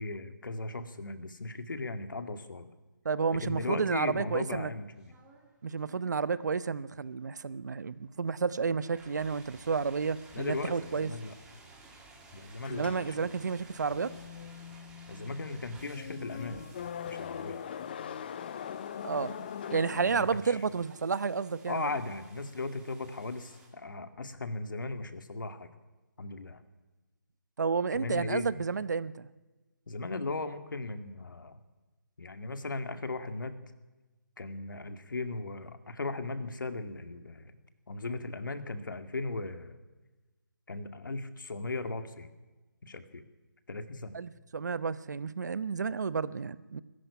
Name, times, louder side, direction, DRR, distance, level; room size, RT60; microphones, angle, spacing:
voice 1, 0.0-2.7 3.3-5.1 10.3-11.3 12.3-13.2 15.1-16.7 17.0-17.6 19.9-20.6 21.7-25.7 26.2-26.6 27.9-28.5 29.9-31.6 32.2-33.6 34.4-37.6 37.9-39.8 40.7-42.3 42.8-43.3 43.7-44.1, left 3 dB, 65° left, 9 dB, 2.3 m, -37 dB
voice 2, 3.0-4.7 5.6-11.1 12.7-14.1 19.0-21.9 27.6-29.3 44.1-46.8, right 5 dB, 55° right, 17 dB, 0.9 m, -31 dB
sound 1, 4.7-23.7, right 3 dB, 5° right, 2.6 m, -56 dB
sound 2, 12.6-20.7, left 8 dB, 30° left, 0.6 m, -42 dB
21.0 x 14.0 x 9.8 m, 1.2 s
figure-of-eight pair, 160°, 11 cm